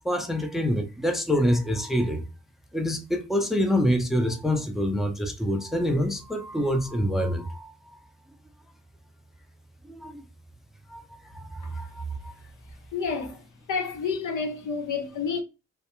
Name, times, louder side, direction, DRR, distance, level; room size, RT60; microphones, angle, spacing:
voice 1, 0.0-2.2 2.7-8.0 9.9-10.2 10.9-12.3, equal, ahead, 0.6 m, -26 dB
voice 2, 12.9-13.4 13.7-15.4, left 5 dB, 70° left, 0.8 m, -29 dB
2.3 x 2.1 x 2.9 m
supercardioid pair, 50°, 31 cm